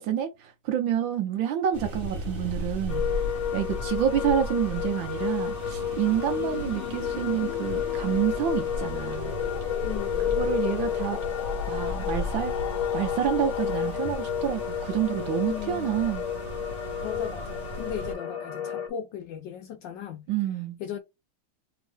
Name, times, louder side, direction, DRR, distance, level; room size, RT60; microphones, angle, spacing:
voice 1, 0.0-3.1 3.5-9.4 10.3-11.2 11.7-12.6 12.9-16.3 20.3-20.8, right 10 dB, 75° right, 1.3 m, -28 dB
sound 1, 1.7-18.1, left 1 dB, 45° right, 1.5 m, -36 dB
sound 2, 2.9-18.9, left 9 dB, 50° left, 0.9 m, -32 dB
sound 3, 5.5-15.0, left 13 dB, 90° left, 1.5 m, -39 dB
voice 2, 9.8-10.3 15.5-16.0 17.0-20.3 20.8-21.0, left 9 dB, 75° left, 1.1 m, -37 dB
3.5 x 2.8 x 3.3 m
omnidirectional pair, 2.4 m